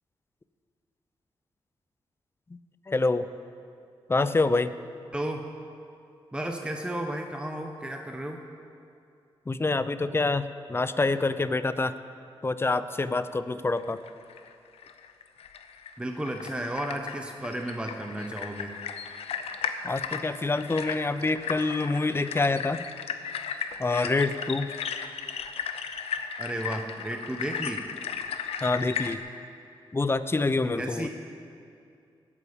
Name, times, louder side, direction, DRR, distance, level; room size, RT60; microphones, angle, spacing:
voice 1, 2.9-3.3 4.1-4.7 9.5-11.9 12.4-14.0 19.8-22.8 23.8-24.7 28.6-29.2 29.9-31.1, left 3 dB, 25° left, 13 dB, 0.6 m, -26 dB
voice 2, 5.1-5.5 6.3-8.4 16.0-18.7 26.4-27.8 30.8-31.1, right 1 dB, 10° right, 3 dB, 1.0 m, -33 dB
sound 1, 13.8-29.2, left 7 dB, 85° left, 0.7 m, -36 dB
18.0 x 8.5 x 5.2 m, 2.5 s
cardioid pair, 70°, 10 cm